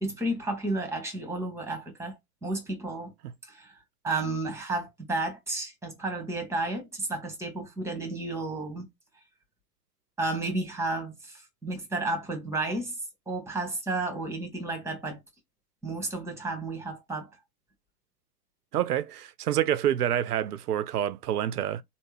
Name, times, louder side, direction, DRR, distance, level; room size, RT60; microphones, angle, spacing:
voice 1, 0.0-3.1 3.4-3.7 4.0-8.9 10.2-13.0 13.3-15.2 15.8-17.3, right 2 dB, 5° right, 1.4 m, -32 dB
voice 2, 18.7-21.8, right 11 dB, 85° right, 0.6 m, -27 dB
3.4 x 2.2 x 3.4 m
hypercardioid pair, 110°, 46 cm